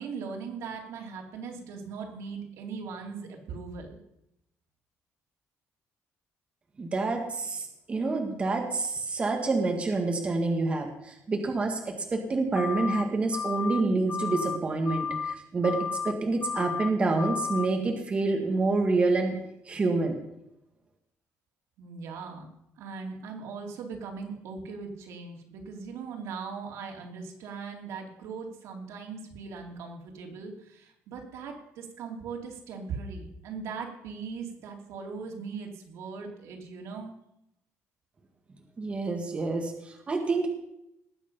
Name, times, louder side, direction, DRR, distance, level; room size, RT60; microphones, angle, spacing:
voice 1, 0.0-4.0 21.8-22.5 22.8-37.1, right 5 dB, 85° right, 1 dB, 3.1 m, -39 dB
voice 2, 6.8-15.8 16.0-19.3 19.6-20.1 38.8-40.5, right 3 dB, 25° right, 3 dB, 1.9 m, -27 dB
sound 1, 12.6-13.0 13.3-13.8 14.1-14.6 14.9-15.3 15.6-16.1 16.4-16.9 17.2-17.7, left 6 dB, 30° left, 0.5 m, -32 dB
19.5 x 8.4 x 5.6 m, 0.80 s
cardioid pair, 160°, 5 cm